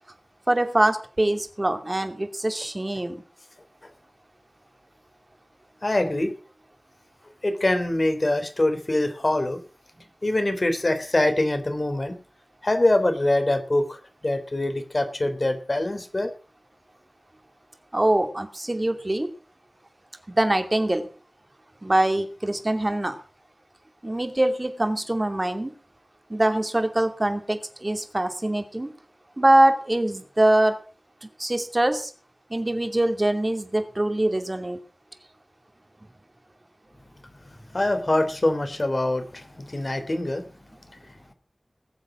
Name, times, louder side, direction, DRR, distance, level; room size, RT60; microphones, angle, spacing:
voice 1, 0.5-3.2 17.9-19.3 20.3-21.1 21.8-23.2 24.0-25.7 26.3-28.9 29.4-30.8 31.4-32.1 32.5-34.8, right 1 dB, 30° right, 7 dB, 2.6 m, -23 dB
voice 2, 5.8-6.3 7.4-9.6 10.2-12.2 12.6-16.3 37.3-41.3, left 1 dB, 45° left, 7 dB, 3.3 m, -24 dB
19.5 x 8.0 x 6.2 m, 0.38 s
wide cardioid pair, 65°, 0 cm